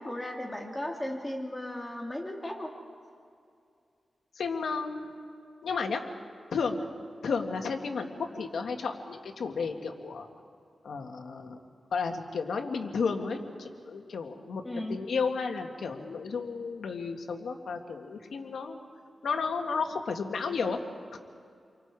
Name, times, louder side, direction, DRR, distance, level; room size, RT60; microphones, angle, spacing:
voice 1, 0.0-2.7 14.6-15.0, left 1 dB, 15° left, 1 dB, 2.5 m, -36 dB
voice 2, 4.4-5.3 5.6-6.0 6.5-6.9 7.2-10.3 10.8-11.6 11.9-18.8 19.2-20.8 21.1-21.2, left 5 dB, 90° left, 4 dB, 1.9 m, -33 dB
30.0 x 24.0 x 4.9 m, 2.3 s
wide cardioid pair, 100°, 0 cm